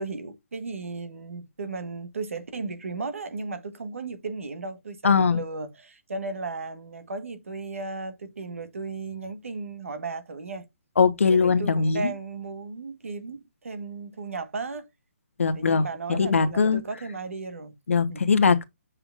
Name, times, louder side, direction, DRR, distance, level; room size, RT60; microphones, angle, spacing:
voice 1, 0.0-10.7 11.3-14.9 15.5-17.7 18.1-18.3, right 4 dB, 80° right, 1.3 m, -35 dB
voice 2, 5.0-5.4 11.0-12.1 15.4-16.8 17.9-18.6, left 5 dB, 70° left, 1.0 m, -21 dB
6.8 x 5.6 x 2.4 m
hypercardioid pair, 175°, 7 cm